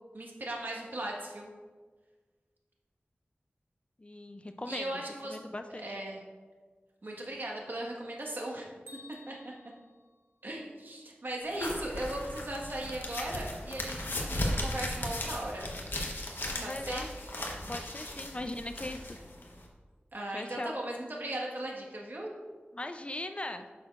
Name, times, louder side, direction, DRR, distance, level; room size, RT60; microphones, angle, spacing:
voice 1, 0.1-1.5 4.7-5.4 5.7-6.2 7.0-8.7 9.3-9.5 10.4-15.7 16.6-17.1 20.1-22.3, right 1 dB, 60° right, -1 dB, 1.4 m, -38 dB
voice 2, 4.0-4.9 5.2-6.0 16.4-17.1 17.7-19.1 20.3-20.8 22.7-23.7, left 1 dB, 30° left, 7 dB, 0.4 m, -39 dB
Bell, 8.9-10.9, left 2 dB, 85° right, 1.4 m, -55 dB
sound 1, 11.5-19.7, left 1 dB, 70° left, 1.1 m, -37 dB
9.2 x 6.3 x 2.5 m, 1.4 s
wide cardioid pair, 65°, 4 cm